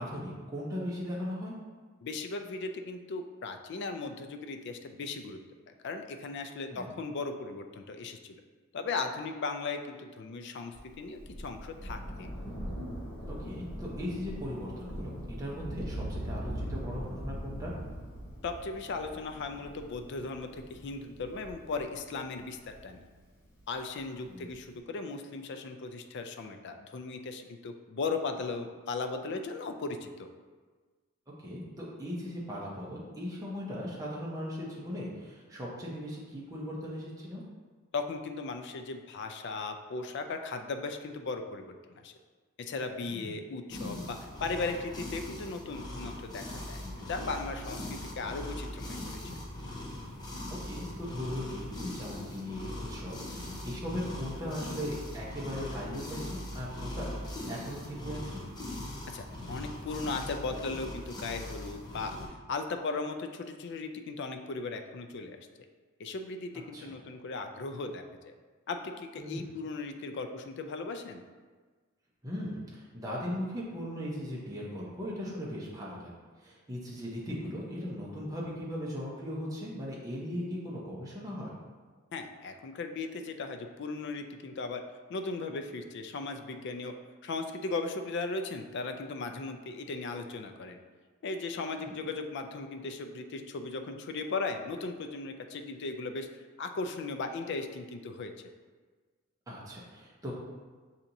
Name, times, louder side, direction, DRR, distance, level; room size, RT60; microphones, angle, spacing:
voice 1, 0.0-1.5 6.7-6.9 13.3-17.7 24.2-24.5 31.4-37.4 43.1-43.3 50.6-58.4 66.7-66.9 69.2-69.5 72.2-76.1 76.4-81.5 99.5-100.3, equal, 15° right, -5 dB, 0.7 m, -38 dB
voice 2, 2.0-5.4 5.7-8.4 8.7-12.3 18.4-22.6 22.8-23.0 23.7-30.3 37.9-42.1 42.6-49.0 59.1-62.2 62.5-65.4 66.0-68.3 68.7-71.2 82.1-84.8 85.1-86.9 87.2-90.8 91.2-96.3 96.6-98.5, left 3 dB, 55° left, 6 dB, 0.4 m, -37 dB
Thunder, 10.7-23.6 24.5-24.6, equal, 70° left, 1.2 m, -41 dB
sound 1, 43.7-62.3, left 1 dB, 20° left, 0.7 m, -41 dB
6.9 x 2.8 x 2.6 m, 1.4 s
head